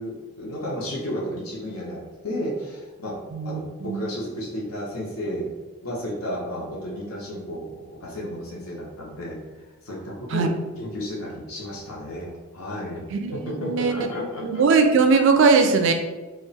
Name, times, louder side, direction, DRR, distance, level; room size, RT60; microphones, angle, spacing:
voice 1, 0.0-3.2 3.4-5.5 5.8-9.4 9.8-14.7, equal, 75° left, -4 dB, 0.7 m, -32 dB
voice 2, 3.3-4.0 10.3-10.5 13.1-14.1 14.4-15.9, right 4 dB, 55° right, 6 dB, 0.3 m, -20 dB
2.3 x 2.1 x 3.9 m, 1.3 s
head